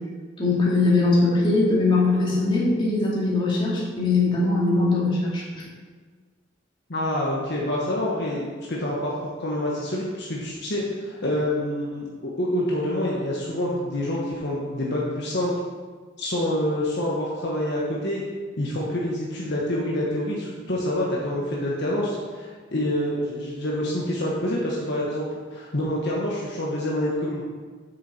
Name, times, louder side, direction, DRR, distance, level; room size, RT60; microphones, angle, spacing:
voice 1, 0.4-5.6, left 3 dB, 25° left, -6 dB, 2.4 m, -21 dB
voice 2, 6.9-9.1 9.4-15.5 16.2-18.2 18.6-27.4, left 1 dB, 60° left, -4 dB, 1.3 m, -27 dB
8.4 x 6.8 x 4.4 m, 1.5 s
head